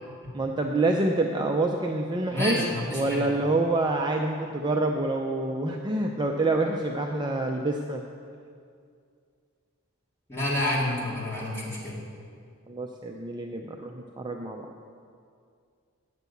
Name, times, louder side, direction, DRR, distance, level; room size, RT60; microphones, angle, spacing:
voice 1, 0.3-8.0 12.7-14.7, right 2 dB, 20° right, 2 dB, 0.5 m, -27 dB
voice 2, 2.3-3.3 10.3-12.0, left 1 dB, 10° left, -7 dB, 2.7 m, -29 dB
9.1 x 6.7 x 8.3 m, 2.3 s
head